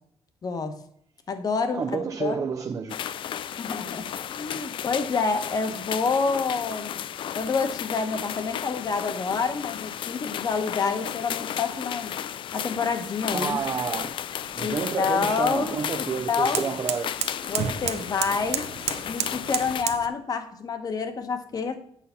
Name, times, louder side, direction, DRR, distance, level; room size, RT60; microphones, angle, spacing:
voice 1, 0.4-0.8 1.3-2.5 3.6-7.0 7.3-12.2 12.5-13.6 14.6-16.6 17.5-18.6 19.0-21.8, left 5 dB, 35° left, 1.0 m, -28 dB
voice 2, 1.7-3.0 13.3-14.2 14.6-17.1, right 6 dB, 30° right, 0.4 m, -30 dB
sound 1, 2.9-19.8, left 9 dB, 50° left, 0.3 m, -34 dB
sound 2, 13.3-20.1, right 9 dB, 75° right, 0.7 m, -34 dB
8.3 x 5.6 x 5.6 m
wide cardioid pair, 175°, 11 cm